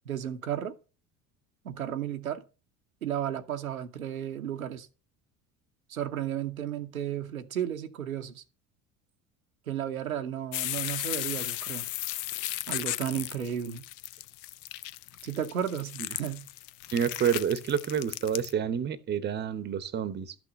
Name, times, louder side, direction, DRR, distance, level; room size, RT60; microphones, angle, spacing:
voice 1, 0.1-0.7 1.6-2.4 3.0-4.9 5.9-8.4 9.7-11.9 12.7-13.9 15.2-16.5, right 10 dB, 80° right, 0.9 m, -33 dB
sound 1, 10.5-18.5, left 15 dB, 45° left, 0.6 m, -36 dB
voice 2, 16.9-20.3, right 8 dB, 25° right, 0.9 m, -28 dB
12.0 x 6.1 x 5.3 m
figure-of-eight pair, 65°, 41 cm